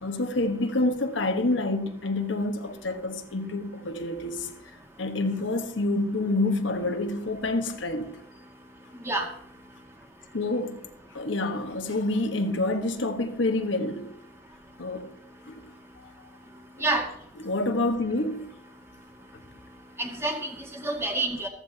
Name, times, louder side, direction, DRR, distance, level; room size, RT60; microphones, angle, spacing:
voice 1, 0.0-4.5 5.0-8.2 10.3-10.8 11.1-14.1 14.8-15.1 15.5-15.6 17.4-18.5, left 2 dB, 80° left, 1.4 m, -27 dB
voice 2, 20.0-21.5, right 2 dB, 15° right, 2.1 m, -28 dB
14.5 x 14.5 x 2.9 m
head